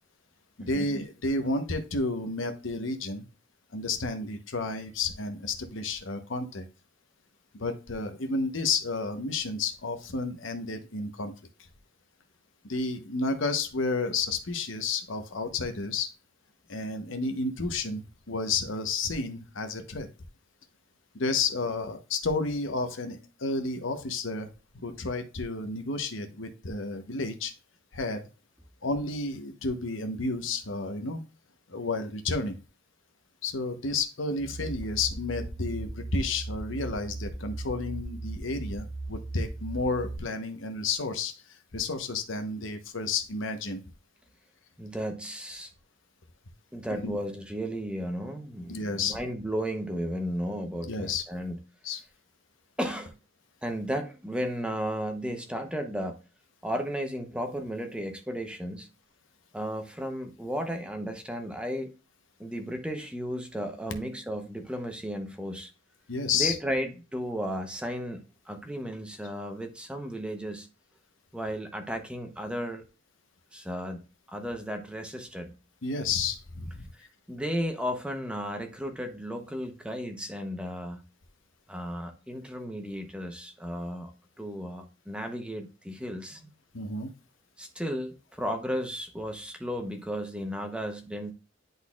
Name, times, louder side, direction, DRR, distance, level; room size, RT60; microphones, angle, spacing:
voice 1, 0.6-3.2 3.7-6.7 7.5-11.3 12.6-16.1 16.7-20.1 21.1-27.5 27.9-28.3 28.8-31.2 31.7-32.6 33.4-43.8 47.0-47.2 48.7-49.2 50.9-51.2 51.8-52.0 66.1-66.6 75.8-76.9 86.7-87.1, left 3 dB, 75° left, 1.0 m, -31 dB
sound 1, 34.4-40.2, right 2 dB, 25° left, 2.1 m, -37 dB
voice 2, 44.8-45.7 46.7-51.6 52.8-53.1 53.6-56.2 56.6-58.9 59.5-61.9 62.4-65.7 66.3-70.7 71.3-72.8 73.5-75.5 76.9-81.0 81.7-84.1 84.4-86.5 87.6-91.3, equal, 5° right, 0.8 m, -34 dB
10.5 x 4.0 x 2.4 m
head